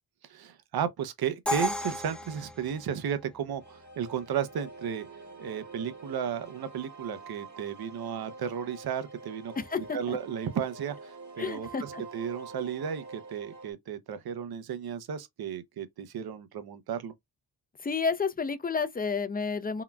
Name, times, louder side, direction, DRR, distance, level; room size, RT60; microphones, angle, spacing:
voice 1, 0.3-5.1 5.4-9.5 9.9-17.1, right 8 dB, 60° right, 0.6 m, -34 dB
Crash cymbal, 1.5-3.4, left 2 dB, 5° left, 0.9 m, -33 dB
sound 1, 3.6-13.7, right 3 dB, 40° right, 1.2 m, -46 dB
voice 2, 9.5-10.2 11.4-12.0 17.8-19.8, left 5 dB, 20° left, 0.4 m, -31 dB
3.8 x 2.1 x 2.2 m
cardioid pair, 55°, 42 cm